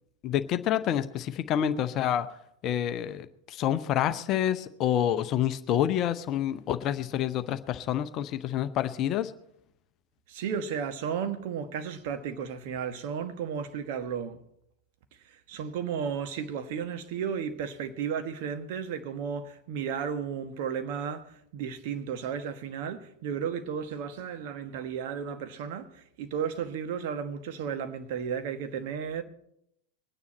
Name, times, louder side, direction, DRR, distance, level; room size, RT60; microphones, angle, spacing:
voice 1, 0.2-2.3 2.6-9.3, left 10 dB, 35° left, 0.7 m, -28 dB
voice 2, 10.3-14.4 15.3-29.2, right 7 dB, 50° right, 1.3 m, -34 dB
22.0 x 9.7 x 4.2 m
figure-of-eight pair, 90°, 0 cm